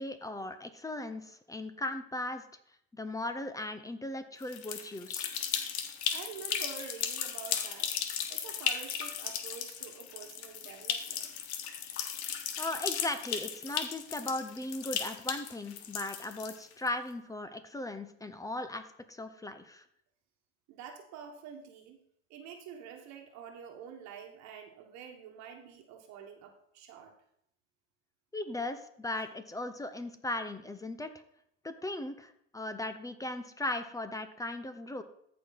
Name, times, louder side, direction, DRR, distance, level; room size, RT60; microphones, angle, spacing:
voice 1, 0.0-2.4 2.9-5.3 12.6-19.8 28.3-31.1 31.6-35.0, left 2 dB, 10° left, 10 dB, 0.8 m, -37 dB
sound 1, 4.4-16.9, left 8 dB, 85° left, 1.2 m, -36 dB
voice 2, 6.1-7.9 8.3-11.4 20.7-22.0 22.3-27.1, right 7 dB, 55° right, 4 dB, 1.4 m, -47 dB
14.0 x 4.9 x 4.0 m, 0.71 s
supercardioid pair, 105°, 33 cm